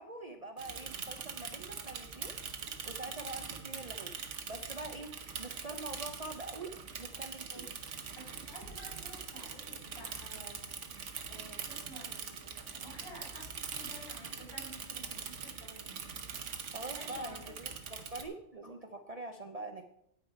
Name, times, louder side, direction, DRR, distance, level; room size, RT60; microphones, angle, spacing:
voice 1, 0.0-2.3 2.8-4.1 4.4-5.1 5.4-6.7 7.0-7.7 16.7-19.9, right 2 dB, 40° right, 5 dB, 0.7 m, -44 dB
Bicycle / Mechanisms, 0.6-18.2, right 6 dB, 85° right, 1.4 m, -43 dB
voice 2, 7.5-7.8 8.1-10.8 11.3-16.0 16.9-17.5, right 1 dB, 60° left, -4 dB, 5.0 m, -52 dB
9.5 x 9.2 x 4.5 m, 0.75 s
omnidirectional pair, 1.2 m